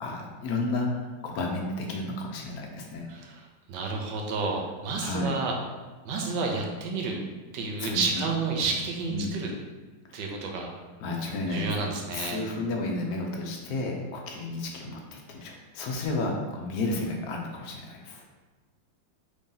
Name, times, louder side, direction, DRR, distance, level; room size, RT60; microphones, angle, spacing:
voice 1, 0.0-3.1 5.0-5.4 7.8-8.2 9.1-9.3 10.1-10.2 11.0-18.2, left 2 dB, 70° left, 1 dB, 0.9 m, -32 dB
voice 2, 3.1-5.5 6.0-7.2 7.5-9.5 10.1-10.7 11.5-12.4, right 4 dB, 75° right, 1 dB, 1.2 m, -30 dB
3.2 x 2.7 x 3.7 m, 1.3 s
omnidirectional pair, 2.0 m